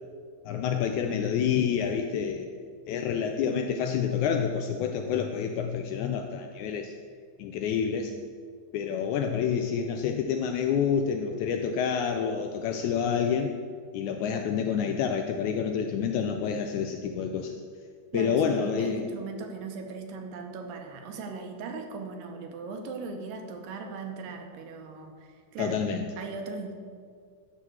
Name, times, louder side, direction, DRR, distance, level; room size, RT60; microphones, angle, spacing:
voice 1, 0.4-2.5 2.9-6.9 7.4-8.1 8.7-13.5 13.9-17.5 18.1-19.1 25.6-26.1, left 7 dB, 85° left, 5 dB, 1.7 m, -28 dB
voice 2, 18.1-26.7, right 4 dB, 80° right, 4 dB, 2.5 m, -39 dB
11.5 x 3.8 x 7.7 m, 2.1 s
omnidirectional pair, 3.8 m